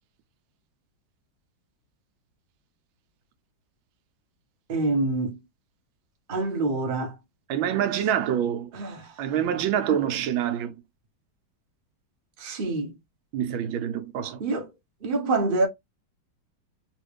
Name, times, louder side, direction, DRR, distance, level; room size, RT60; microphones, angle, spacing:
voice 1, 4.7-5.4 6.3-7.1 8.7-9.1 12.4-12.9 14.4-14.7 15.0-15.7, right 2 dB, 40° right, 0.7 m, -26 dB
voice 2, 7.5-8.7 9.2-10.7 13.3-14.4, right 9 dB, 80° right, 1.4 m, -26 dB
3.1 x 3.1 x 3.2 m
omnidirectional pair, 2.2 m